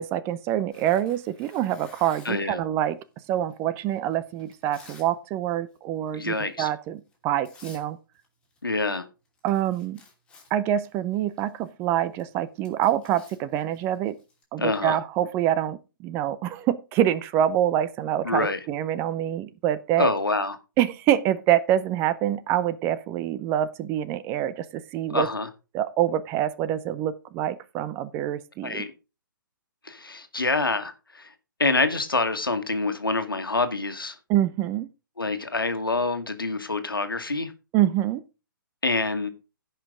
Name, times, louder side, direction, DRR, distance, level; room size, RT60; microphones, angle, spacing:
voice 1, 0.0-3.0 3.3-8.0 9.4-10.0 10.5-14.1 14.5-20.1 20.8-25.3 25.7-28.8 34.3-34.9 37.7-38.2, right 11 dB, 20° right, 0.5 m, -26 dB
Tearing, 0.7-2.5 3.2-5.1 5.4-5.8 6.2-6.4 7.1-7.2 7.4-7.9 8.1-8.6 8.9-9.0 9.2-14.4, left 3 dB, 10° left, 2.8 m, -53 dB
voice 2, 2.2-2.6 6.1-6.7 8.6-9.0 14.6-15.0 18.2-18.6 20.0-20.6 25.1-25.5 28.6-28.9 29.8-31.3 31.6-34.2 35.2-37.5 38.8-39.3, left 3 dB, 80° left, 1.6 m, -26 dB
15.5 x 5.6 x 3.7 m
figure-of-eight pair, 125°, 12 cm